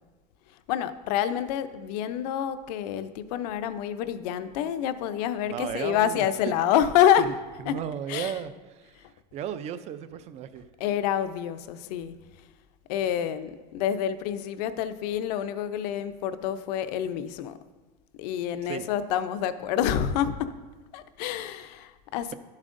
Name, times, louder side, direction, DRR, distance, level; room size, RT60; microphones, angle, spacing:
voice 1, 0.7-7.2 7.7-7.8 8.1-8.3 10.8-12.1 12.9-17.6 18.2-20.5 20.9-22.3, left 10 dB, 70° left, 12 dB, 0.6 m, -27 dB
voice 2, 5.4-6.3 7.2-7.3 7.6-10.6 18.6-18.9, right 9 dB, 30° right, 13 dB, 0.4 m, -35 dB
12.0 x 7.3 x 2.6 m, 1.3 s
supercardioid pair, 145°, 21 cm